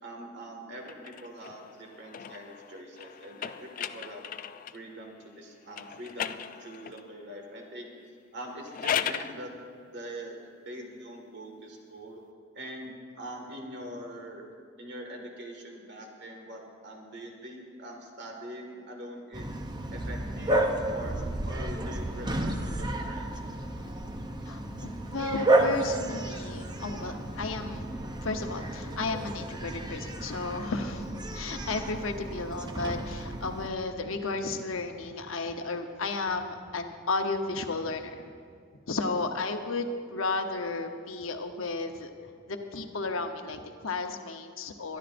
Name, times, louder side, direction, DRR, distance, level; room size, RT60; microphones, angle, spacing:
voice 1, 0.0-4.3 4.7-7.9 8.3-9.5 9.9-12.2 12.5-14.4 14.8-19.6 19.9-21.2 21.5-23.4, right 1 dB, 55° right, 2 dB, 1.9 m, -43 dB
sound 1, 0.8-4.9 5.7-7.1 8.5-9.4, left 8 dB, 40° left, 0.3 m, -36 dB
Bark, 19.3-33.7, right 1 dB, 20° right, 0.7 m, -32 dB
voice 2, 24.5-38.2 38.9-42.1 42.5-45.0, left 3 dB, 75° left, 5 dB, 1.0 m, -33 dB
23.5 x 11.5 x 2.6 m, 2.3 s
head